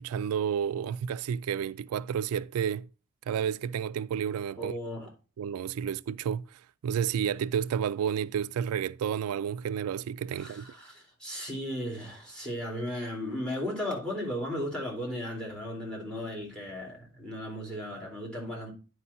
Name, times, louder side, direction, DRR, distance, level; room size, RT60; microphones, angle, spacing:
voice 1, 0.0-2.9 3.3-4.7 5.4-10.7, right 8 dB, 90° right, 0.3 m, -31 dB
voice 2, 4.6-5.1 10.3-18.7, equal, 5° left, 2.7 m, -36 dB
9.7 x 4.9 x 4.1 m
head